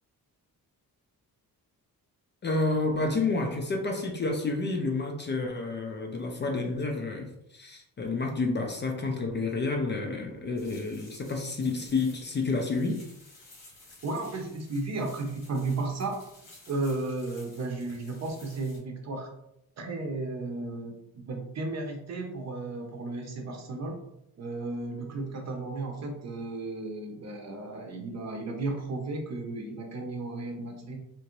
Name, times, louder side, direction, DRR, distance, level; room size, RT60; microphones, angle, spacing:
voice 1, 2.4-13.0, left 3 dB, 30° left, 2 dB, 0.4 m, -30 dB
sound 1, 10.6-18.8, left 2 dB, 85° left, 1.5 m, -54 dB
voice 2, 14.0-16.2 16.7-19.3 19.8-24.0 24.4-31.0, right 3 dB, 50° right, 3 dB, 0.6 m, -34 dB
2.9 x 2.5 x 2.9 m, 0.80 s
wide cardioid pair, 140°, 35 cm